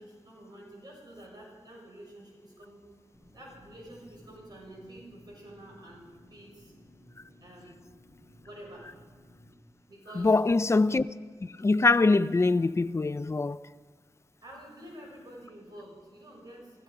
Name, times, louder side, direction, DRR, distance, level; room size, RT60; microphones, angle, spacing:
voice 1, 0.0-2.8 3.3-6.7 7.4-7.8 8.4-8.9 9.9-10.4 14.4-16.8, right 1 dB, 50° right, 6.2 m, -48 dB
sound 1, 3.1-9.5, left 1 dB, 20° right, 4.5 m, -57 dB
voice 2, 10.2-11.1 11.4-13.6, left 3 dB, 30° left, 0.4 m, -23 dB
15.5 x 15.5 x 4.9 m
wide cardioid pair, 60°, 9 cm